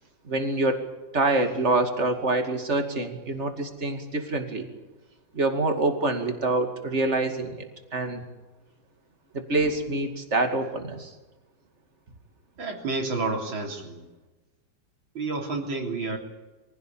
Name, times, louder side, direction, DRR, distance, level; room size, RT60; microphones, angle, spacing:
voice 1, 0.2-0.8 1.1-4.7 5.3-7.6 7.9-8.2 9.3-11.1, right 2 dB, 35° right, 6 dB, 2.6 m, -26 dB
voice 2, 12.6-14.0 15.1-16.2, right 3 dB, 85° right, 1 dB, 4.1 m, -30 dB
23.5 x 16.5 x 8.6 m, 1.2 s
omnidirectional pair, 2.1 m